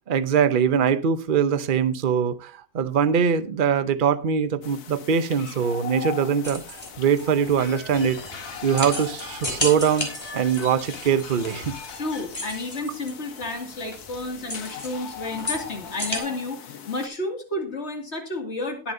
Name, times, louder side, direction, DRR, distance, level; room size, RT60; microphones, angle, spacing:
voice 1, 0.1-8.2 8.6-11.7, right 7 dB, 45° right, 0.8 m, -22 dB
sound 1, 4.6-17.1, left 7 dB, 90° left, 1.6 m, -40 dB
sound 2, 6.4-16.2, left 1 dB, 15° left, 3.3 m, -34 dB
sound 3, 7.6-12.8, left 4 dB, 65° left, 2.0 m, -41 dB
voice 2, 12.0-18.9, left 2 dB, 45° left, 2.7 m, -31 dB
20.5 x 7.3 x 2.7 m
omnidirectional pair, 1.6 m